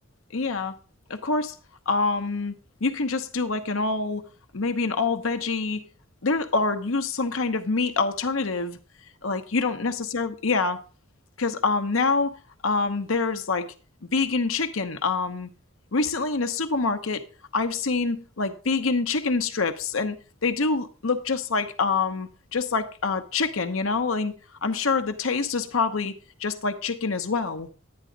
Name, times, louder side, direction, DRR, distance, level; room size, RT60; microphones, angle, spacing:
voice 1, 0.3-0.7 1.1-1.6 1.9-2.5 2.8-4.2 4.5-5.8 6.2-8.8 9.2-10.8 11.4-13.7 14.1-15.5 15.9-17.2 17.5-20.2 20.4-24.3 24.6-26.1 26.4-27.7, left 4 dB, 90° left, 0.9 m, -26 dB
11.5 x 9.7 x 3.9 m
head